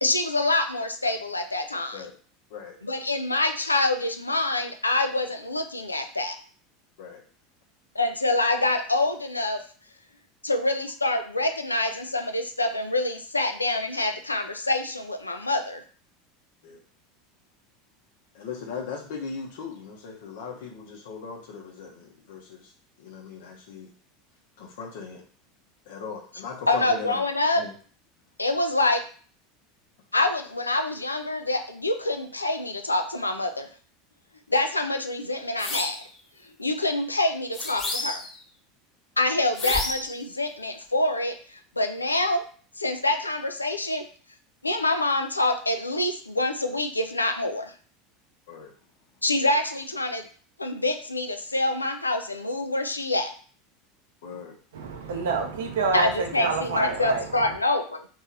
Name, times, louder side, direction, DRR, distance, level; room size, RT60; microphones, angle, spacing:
voice 1, 0.0-2.1 2.8-6.4 8.0-9.6 10.4-15.8 26.7-27.6 28.4-29.0 30.1-33.7 34.5-36.0 36.6-38.2 39.2-42.4 42.8-44.0 44.6-47.7 49.2-50.3 50.6-53.3 55.9-58.1, left 2 dB, 85° left, 0.4 m, -26 dB
voice 2, 18.3-22.7 23.0-23.9 24.6-25.2 25.9-27.2 27.6-27.7 48.5-48.7 54.2-54.5, left 5 dB, 60° left, 0.9 m, -38 dB
sound 1, 35.6-36.1 37.5-38.4 39.6-40.2, left 2 dB, 25° left, 1.3 m, -30 dB
voice 3, 54.7-57.6, right 4 dB, 65° right, 0.7 m, -28 dB
3.1 x 2.6 x 3.8 m
figure-of-eight pair, 80°, 0 cm